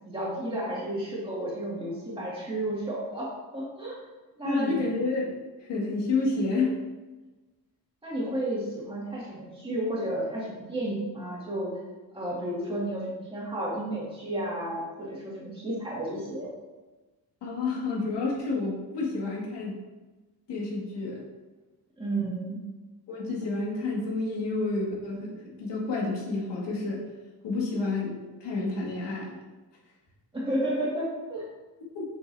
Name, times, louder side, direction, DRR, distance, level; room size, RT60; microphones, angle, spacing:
voice 1, 0.0-4.0 4.4-4.9 6.3-6.5 8.0-11.7 12.1-16.5 22.0-22.6 30.3-31.4, right 1 dB, 15° right, -7 dB, 2.1 m, -32 dB
voice 2, 4.4-5.3 5.6-6.8 17.4-19.8 20.5-21.2 23.1-27.0 27.4-29.4 31.9-32.1, left 3 dB, 80° left, -3 dB, 2.2 m, -29 dB
7.9 x 6.7 x 2.8 m, 1.2 s
cardioid pair, 175°, 41 cm